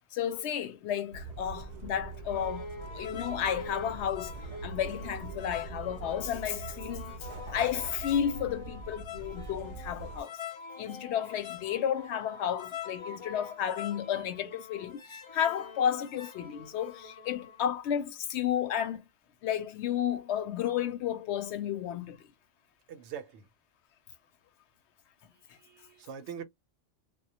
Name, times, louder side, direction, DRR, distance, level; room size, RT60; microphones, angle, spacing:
voice 1, 0.1-7.2 7.5-10.4 10.8-19.1 19.4-22.3, left 9 dB, 70° left, 0.8 m, -32 dB
sound 1, 1.1-10.2, right 4 dB, 55° right, 0.5 m, -43 dB
sound 2, 2.3-17.7, left 5 dB, 50° left, 0.3 m, -45 dB
voice 2, 22.9-23.4 25.6-26.4, right 7 dB, 75° right, 0.8 m, -42 dB
2.1 x 2.1 x 2.7 m
omnidirectional pair, 1.2 m